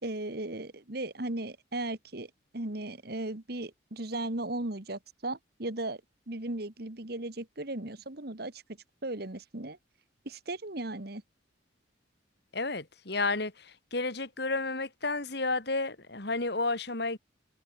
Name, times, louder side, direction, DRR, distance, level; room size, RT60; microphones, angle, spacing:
voice 1, 0.0-6.0 6.3-8.6 9.0-9.8 10.3-11.2, right 2 dB, 50° right, 1.8 m, -36 dB
voice 2, 12.5-17.2, left 3 dB, 55° left, 2.2 m, -31 dB
open air
head